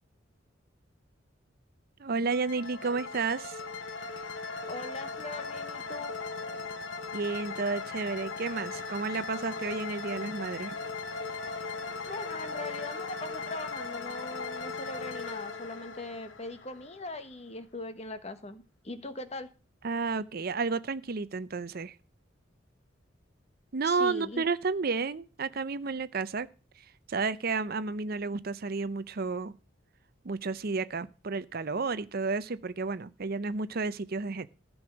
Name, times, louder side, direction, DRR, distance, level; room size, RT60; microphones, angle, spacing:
voice 1, 2.0-3.6 7.1-10.8 19.8-22.0 23.7-26.5 27.1-29.5 30.2-34.5, right 4 dB, 50° right, 15 dB, 0.6 m, -31 dB
sound 1, 2.3-17.1, left 4 dB, 80° left, 1.3 m, -38 dB
voice 2, 4.6-6.2 12.1-19.5 23.8-24.4, left 2 dB, 35° left, 10 dB, 1.2 m, -41 dB
14.0 x 6.3 x 6.2 m, 0.34 s
head